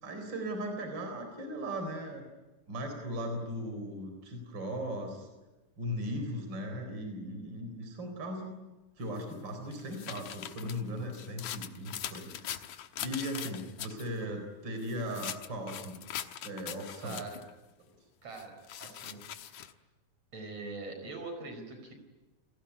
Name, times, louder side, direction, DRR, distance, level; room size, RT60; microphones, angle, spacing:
voice 1, 0.0-2.3 2.7-5.3 5.8-8.5 9.0-12.7 13.0-16.0 16.4-17.2, equal, 35° right, 5 dB, 4.6 m, -38 dB
sound 1, 9.2-14.1 14.8-17.5 18.4-19.7, left 10 dB, 75° left, 2.5 m, -42 dB
voice 2, 17.0-17.5 18.2-19.2 19.5-19.7 20.3-21.9, right 3 dB, 55° right, 5 dB, 5.9 m, -43 dB
30.0 x 20.5 x 9.8 m, 1.2 s
omnidirectional pair, 3.5 m